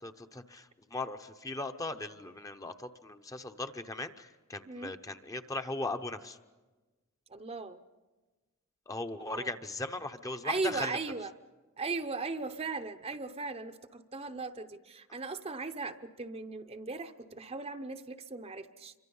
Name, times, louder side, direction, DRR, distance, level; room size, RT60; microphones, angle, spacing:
voice 1, 0.0-6.4 8.9-11.0, left 2 dB, 15° left, 7 dB, 0.8 m, -38 dB
voice 2, 4.7-5.0 7.3-7.8 9.2-9.5 10.4-11.3 11.8-18.9, right 3 dB, 30° right, 8 dB, 0.8 m, -38 dB
27.5 x 24.5 x 5.5 m, 1.2 s
head